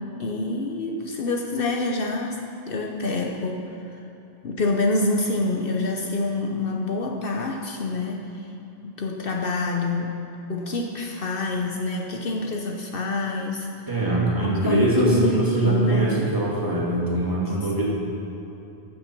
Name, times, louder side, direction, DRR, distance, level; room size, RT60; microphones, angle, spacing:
voice 1, 0.2-2.4 2.7-3.6 4.4-8.2 8.8-10.2 10.5-13.7 14.4-16.1 17.5-17.6, left 2 dB, 60° left, 1 dB, 1.0 m, -26 dB
voice 2, 13.9-17.8, right 1 dB, 20° right, -6 dB, 2.4 m, -22 dB
14.5 x 6.3 x 6.0 m, 3.0 s
omnidirectional pair, 1.1 m